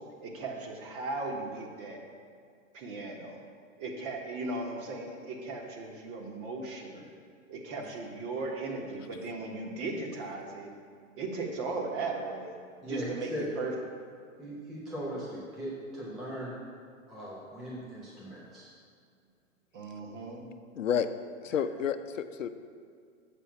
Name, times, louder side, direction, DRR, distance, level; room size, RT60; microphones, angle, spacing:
voice 1, 0.0-2.0 2.7-3.4 3.8-7.1 7.5-10.7 11.2-12.6 12.9-13.7 19.7-20.4, right 3 dB, 40° right, 1 dB, 1.4 m, -37 dB
voice 2, 12.8-13.5 14.4-16.6 17.1-18.7, equal, ahead, -6 dB, 0.3 m, -39 dB
voice 3, 20.8-21.1 21.4-22.5, left 8 dB, 70° left, 10 dB, 0.6 m, -30 dB
7.3 x 5.4 x 5.8 m, 2.2 s
figure-of-eight pair, 105°, 40 cm